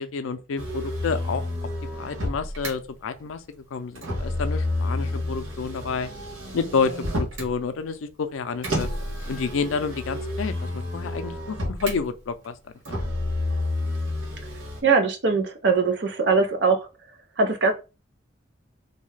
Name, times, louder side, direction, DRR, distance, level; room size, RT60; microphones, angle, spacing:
voice 1, 0.0-1.7 2.0-6.1 6.5-8.9 9.3-12.5 12.9-13.0, left 5 dB, 90° left, 0.4 m, -29 dB
Motor vehicle (road), 0.6-2.7 3.9-7.5 8.6-12.0 12.8-14.8, left 1 dB, 90° right, 1.1 m, -30 dB
voice 2, 14.8-16.8 17.4-17.7, right 4 dB, 60° right, 0.6 m, -21 dB
2.7 x 2.3 x 3.2 m
head